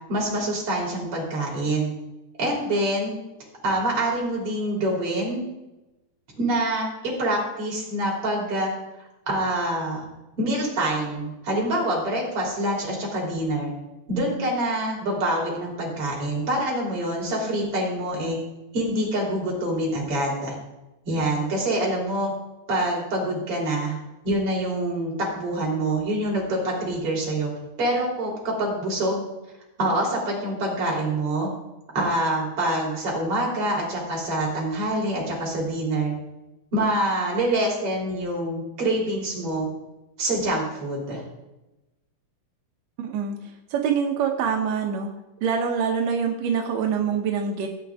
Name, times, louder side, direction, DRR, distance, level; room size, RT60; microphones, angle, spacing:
voice 1, 0.1-1.9 2.4-3.1 3.6-5.4 6.4-6.9 7.2-8.7 9.3-10.0 10.4-13.7 14.1-18.4 18.7-20.5 21.1-22.3 22.7-24.0 24.2-27.5 27.8-29.3 29.8-31.5 31.9-36.1 36.7-39.7 40.2-41.2, right 1 dB, 35° right, -2 dB, 4.0 m, -25 dB
voice 2, 43.0-43.4 43.7-45.1 45.4-47.7, right 6 dB, 75° right, 2 dB, 1.6 m, -25 dB
16.0 x 9.0 x 3.5 m, 0.98 s
omnidirectional pair, 4.5 m